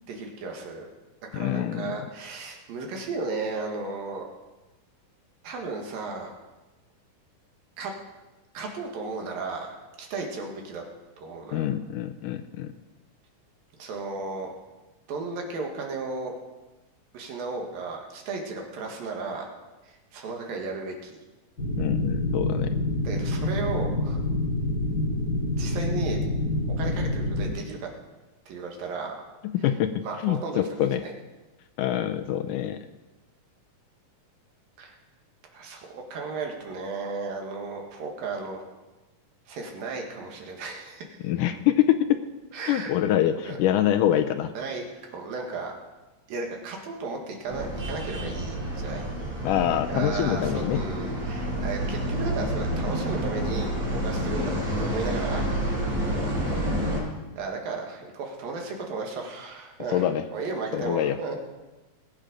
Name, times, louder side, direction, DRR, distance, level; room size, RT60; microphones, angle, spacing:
voice 1, 0.1-0.9 1.3-4.3 5.4-6.3 7.8-7.9 8.5-10.8 11.2-11.6 13.8-14.5 15.1-16.4 17.1-19.5 19.9-21.2 23.0-24.2 25.6-26.2 26.8-27.9 28.5-29.2 30.0-30.6 31.0-31.1 34.8-35.0 35.5-38.6 39.5-41.3 42.5-42.9 43.4-43.6 44.6-44.8 45.1-45.7 46.3-49.1 49.9-55.4 57.4-61.4, right 4 dB, 80° right, 1 dB, 3.6 m, -34 dB
voice 2, 1.3-1.9 11.5-12.7 21.8-22.7 29.5-29.9 30.2-31.0 31.8-32.8 41.2-42.2 42.7-44.5 49.4-50.9 54.4-54.5 59.9-60.2 60.7-61.2, left 11 dB, 80° left, 8 dB, 2.0 m, -25 dB
sound 1, 21.6-27.5, left 2 dB, 25° left, 2.2 m, -27 dB
sound 2, 47.5-57.0, right 1 dB, 55° right, 5.8 m, -29 dB
20.0 x 8.7 x 5.1 m, 1.1 s
omnidirectional pair, 4.0 m